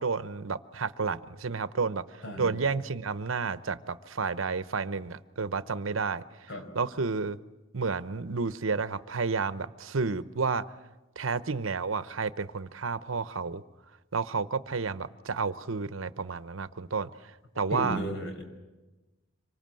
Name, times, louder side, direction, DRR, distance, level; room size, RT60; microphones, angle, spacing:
voice 1, 0.0-2.0 2.4-6.2 6.7-7.4 7.7-10.6 11.2-13.6 14.1-17.1 17.6-18.0, right 4 dB, 80° right, 14 dB, 0.9 m, -31 dB
voice 2, 2.2-2.5 6.5-6.6 17.7-18.4, equal, 65° left, 5 dB, 5.4 m, -34 dB
26.0 x 24.5 x 7.7 m, 1.1 s
head